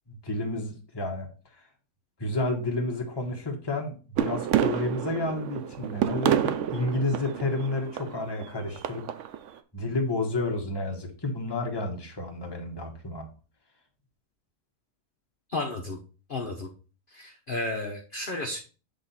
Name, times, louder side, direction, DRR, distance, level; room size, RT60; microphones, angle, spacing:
voice 1, 0.1-1.3 2.2-9.0 9.7-13.3, left 2 dB, 15° left, 2 dB, 1.1 m, -30 dB
sound 1, 4.2-9.5, right 10 dB, 70° right, 0.7 m, -29 dB
voice 2, 15.5-16.0 16.3-16.7 17.1-18.6, left 2 dB, 40° left, 2 dB, 0.8 m, -32 dB
8.1 x 3.7 x 4.1 m, 0.36 s
omnidirectional pair, 1.7 m